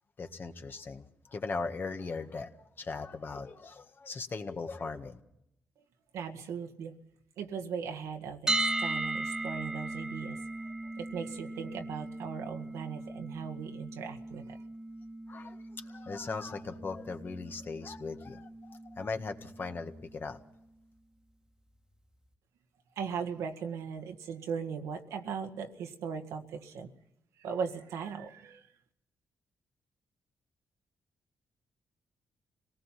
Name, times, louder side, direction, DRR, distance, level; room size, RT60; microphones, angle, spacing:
voice 1, 0.2-1.0 1.3-2.5 2.8-5.2 15.3-15.6 15.9-20.4, left 4 dB, 45° left, 6 dB, 1.8 m, -38 dB
voice 2, 6.1-7.0 7.4-10.4 11.0-14.6 23.0-26.9 27.4-28.7, right 6 dB, 85° right, 5 dB, 1.8 m, -38 dB
sound 1, 8.5-20.4, right 2 dB, 10° right, 1.6 m, -38 dB
25.5 x 18.5 x 5.9 m, 0.79 s
cardioid pair, 75°, 5 cm